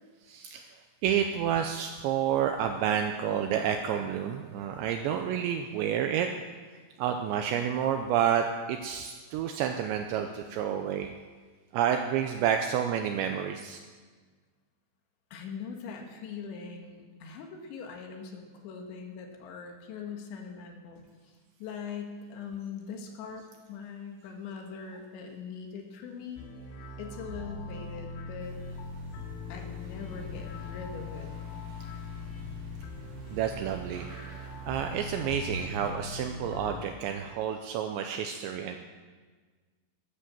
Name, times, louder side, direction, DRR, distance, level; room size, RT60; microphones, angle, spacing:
voice 1, 0.3-0.7 1.0-6.3 7.0-11.1 11.7-13.8 33.3-34.1 34.7-38.8, right 9 dB, 85° right, 5 dB, 2.6 m, -29 dB
voice 2, 15.3-21.3 21.6-26.4 27.0-28.6 29.5-31.3, left 6 dB, 70° left, 3 dB, 3.5 m, -41 dB
sound 1, 26.4-36.8, left 3 dB, 90° left, 4.5 m, -41 dB
sound 2, 28.4-35.9, right 2 dB, 60° right, 5.4 m, -49 dB
13.0 x 11.0 x 7.5 m, 1.5 s
omnidirectional pair, 5.8 m